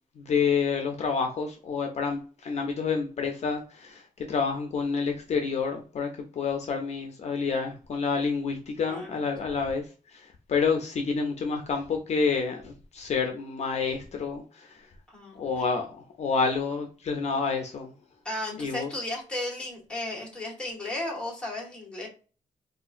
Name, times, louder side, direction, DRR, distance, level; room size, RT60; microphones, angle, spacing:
voice 1, 0.2-4.0 4.3-6.1 6.4-9.8 10.1-14.8 15.4-17.9 18.6-18.9, left 5 dB, 55° left, 3 dB, 0.5 m, -28 dB
voice 2, 8.9-9.2 15.1-15.5 18.2-22.1, left 1 dB, 5° left, -3 dB, 1.1 m, -34 dB
3.9 x 2.4 x 2.4 m, 0.38 s
wide cardioid pair, 180°, 14 cm